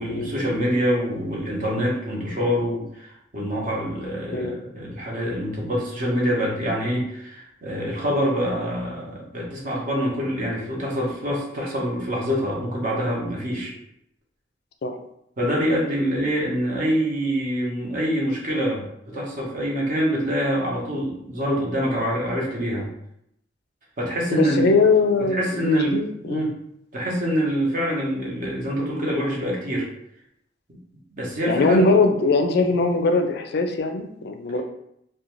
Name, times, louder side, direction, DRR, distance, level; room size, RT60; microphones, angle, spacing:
voice 1, 0.0-13.7 15.4-22.9 24.0-24.7 25.3-26.5 26.9-29.9 31.2-31.9, equal, 45° right, -3 dB, 0.8 m, -25 dB
voice 2, 24.3-26.5 31.5-34.6, left 3 dB, 60° left, 5 dB, 0.3 m, -21 dB
2.5 x 2.2 x 3.0 m, 0.75 s
head